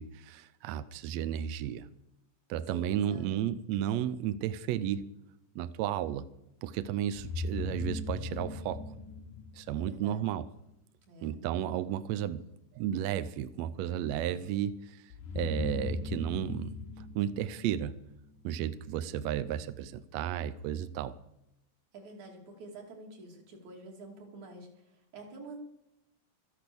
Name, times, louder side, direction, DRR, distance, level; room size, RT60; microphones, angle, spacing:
voice 1, 0.0-1.9 2.5-5.1 5.5-6.3 6.6-8.9 9.5-10.5 11.2-12.5 12.7-18.0 18.4-21.1, right 10 dB, 80° right, 13 dB, 1.6 m, -33 dB
voice 2, 2.7-3.3 9.7-10.2 11.1-11.4 21.9-25.6, right 2 dB, 60° right, 1 dB, 3.8 m, -48 dB
sound 1, 7.2-10.1 15.1-18.3, left 3 dB, 90° left, 2.6 m, -38 dB
13.5 x 10.5 x 6.9 m, 0.86 s
omnidirectional pair, 3.7 m